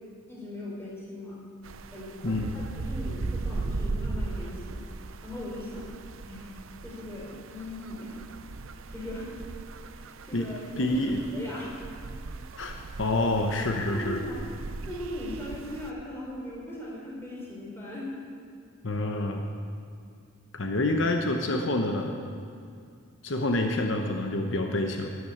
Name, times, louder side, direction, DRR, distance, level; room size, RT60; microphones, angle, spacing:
voice 1, 0.3-1.4 1.9-4.9 5.2-5.9 6.2-6.5 6.8-8.2 8.9-9.3 9.9-11.0 11.3-11.8 13.9-14.5 14.9-18.1, left 1 dB, 10° left, -5 dB, 4.1 m, -39 dB
sound 1, 1.6-15.9, right 3 dB, 85° right, 0.6 m, -38 dB
voice 2, 10.8-11.2 12.6-14.2 18.8-19.4 20.5-22.2 23.2-25.1, left 2 dB, 70° left, 3 dB, 1.0 m, -27 dB
12.5 x 9.5 x 8.6 m, 2.3 s
head